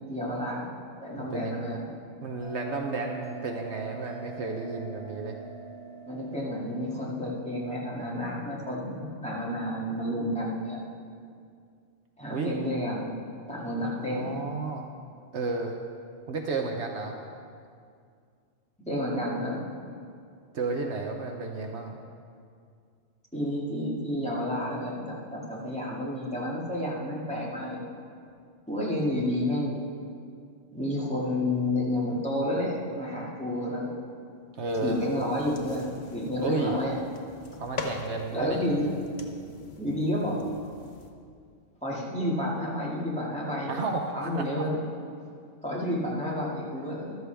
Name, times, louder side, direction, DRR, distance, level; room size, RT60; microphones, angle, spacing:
voice 1, 0.1-0.7 1.0-1.9 6.1-10.8 12.2-13.2 13.5-14.4 18.8-19.7 23.3-27.8 28.7-29.8 30.7-33.9 34.8-37.0 38.3-38.9 39.8-40.4 41.8-43.9 44.1-44.8 45.6-47.2, left 1 dB, 5° left, -6 dB, 2.1 m, -30 dB
voice 2, 1.2-1.7 2.2-5.4 12.2-12.6 14.0-14.9 15.3-15.8 16.3-17.2 20.5-21.9 34.5-35.0 36.4-36.8 37.6-38.6 43.7-44.7, right 3 dB, 65° right, 2 dB, 1.1 m, -32 dB
Bell, 2.4-7.5, right 4 dB, 30° left, 2.5 m, -43 dB
sound 1, 34.7-41.1, left 4 dB, 60° left, 1.2 m, -43 dB
14.0 x 12.5 x 3.5 m, 2.3 s
omnidirectional pair, 1.3 m